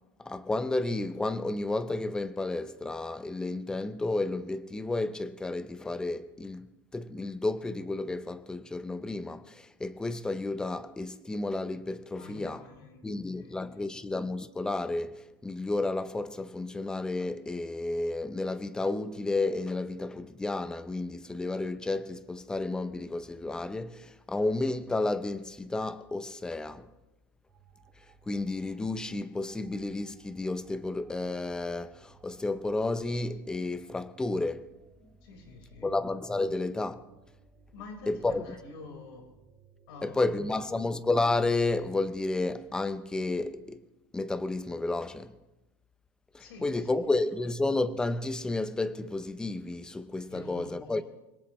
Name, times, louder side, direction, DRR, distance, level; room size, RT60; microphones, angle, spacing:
voice 1, 0.2-12.6 13.0-26.9 28.3-34.8 35.8-37.0 38.1-38.4 40.0-43.8 44.1-45.4 46.3-51.0, left 2 dB, 5° left, 0.6 m, -31 dB
voice 2, 12.2-14.0 35.2-36.0 37.7-39.3 39.9-40.3 40.6-40.8 46.4-47.1 50.3-51.0, left 3 dB, 70° left, 4.6 m, -48 dB
sound 1, 27.5-43.8, right 4 dB, 25° right, 3.1 m, -61 dB
25.0 x 18.0 x 3.1 m
supercardioid pair, 165°, 13 cm